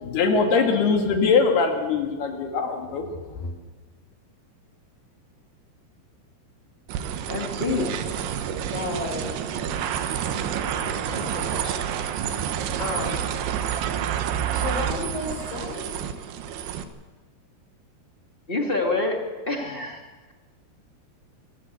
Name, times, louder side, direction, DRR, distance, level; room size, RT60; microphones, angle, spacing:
voice 1, 0.0-3.1 3.3-3.5, left 5 dB, 70° left, 4 dB, 4.0 m, -22 dB
sound 1, 6.9-16.8, right 9 dB, 75° right, 3.1 m, -29 dB
voice 2, 7.3-7.9 18.5-19.2 19.5-20.0, left 3 dB, 20° left, 1 dB, 1.6 m, -26 dB
voice 3, 8.7-9.3 9.7-9.8 10.6-12.1 12.8-13.2 14.5-15.9, left 2 dB, 55° left, 0 dB, 7.5 m, -33 dB
25.5 x 15.0 x 8.2 m, 1.3 s
omnidirectional pair, 4.8 m